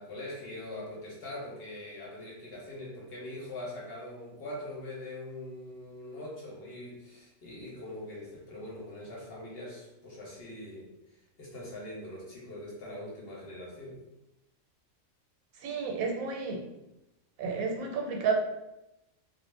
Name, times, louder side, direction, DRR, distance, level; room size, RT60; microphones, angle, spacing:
voice 1, 0.0-14.0, left 1 dB, 55° left, -4 dB, 0.7 m, -42 dB
voice 2, 15.6-16.6 17.4-18.3, right 5 dB, 90° right, 1 dB, 1.0 m, -31 dB
2.4 x 2.0 x 3.1 m, 0.91 s
omnidirectional pair, 1.4 m